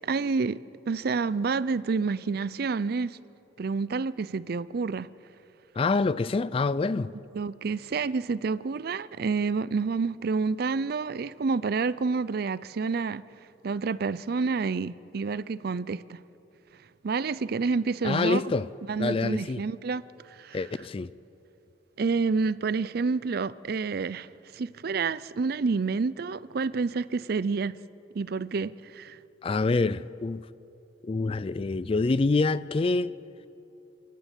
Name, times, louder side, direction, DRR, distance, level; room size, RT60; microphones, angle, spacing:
voice 1, 0.0-3.2 3.6-5.1 7.3-13.2 13.6-16.2 17.0-18.5 18.8-20.7 22.0-27.8 28.1-29.2, right 4 dB, 55° right, 0.5 m, -29 dB
voice 2, 5.8-7.1 18.0-18.7 19.0-19.6 20.5-21.1 29.4-30.5 31.0-33.1, left 3 dB, 30° left, 0.4 m, -26 dB
27.5 x 11.5 x 8.2 m
head